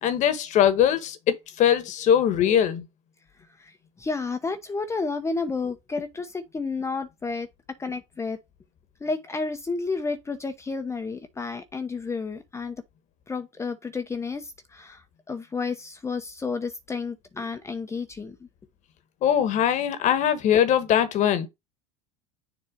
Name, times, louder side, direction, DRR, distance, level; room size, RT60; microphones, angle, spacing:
voice 1, 0.0-2.9 19.2-21.5, left 9 dB, 50° left, 1.2 m, -21 dB
voice 2, 4.0-7.5 7.8-8.4 9.0-12.8 13.3-15.0 15.3-18.4, left 4 dB, 15° left, 0.7 m, -31 dB
7.1 x 2.8 x 5.1 m
hypercardioid pair, 85°, 16 cm